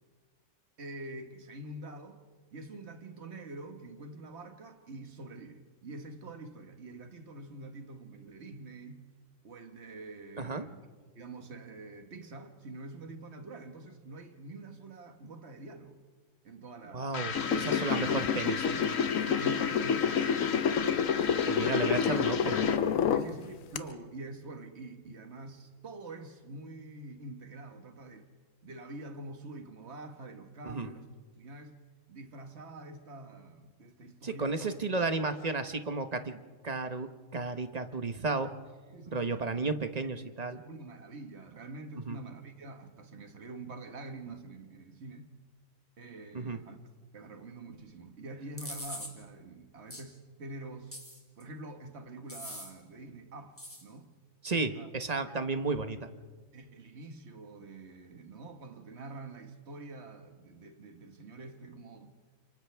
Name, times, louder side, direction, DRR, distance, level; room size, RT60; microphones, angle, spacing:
voice 1, 0.8-2.2 2.5-9.0 9.4-10.8 11.1-16.0 16.4-17.3 19.3-21.1 21.7-22.0 23.1-28.3 28.6-31.1 31.4-31.8 32.1-34.7 38.9-39.5 40.7-45.3 46.0-46.8 47.1-51.0 51.4-54.1 54.5-54.9 55.2-55.4 56.5-62.1, right 2 dB, 55° right, 1.8 m, -46 dB
voice 2, 16.9-18.8 21.5-22.7 30.6-30.9 34.2-38.5 39.1-40.6 42.1-42.2 46.3-46.6 54.4-56.1, right 3 dB, 30° right, 1.0 m, -33 dB
sound 1, 17.1-22.9, left 6 dB, 55° left, 1.2 m, -36 dB
sound 2, 17.4-23.3 23.8-23.9, left 7 dB, 75° left, 1.2 m, -28 dB
sound 3, 48.6-49.1 49.9-50.0 50.9-51.4 52.3-52.7 53.6-53.8, left 1 dB, 10° left, 2.7 m, -42 dB
30.0 x 27.0 x 3.5 m
omnidirectional pair, 1.4 m